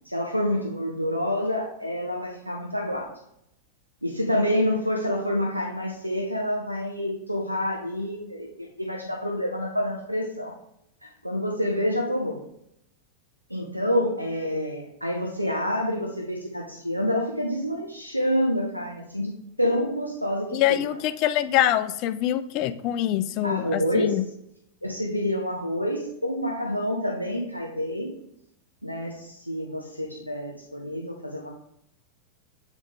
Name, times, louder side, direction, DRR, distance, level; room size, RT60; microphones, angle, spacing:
voice 1, 0.0-3.1 4.0-10.5 11.2-12.4 13.5-20.8 23.4-24.2 24.8-28.1 28.8-31.5, equal, 90° right, 1 dB, 0.9 m, -28 dB
voice 2, 20.5-24.2, left 12 dB, 40° left, 12 dB, 0.4 m, -24 dB
8.2 x 3.6 x 3.5 m, 0.78 s
figure-of-eight pair, 90°, 0 cm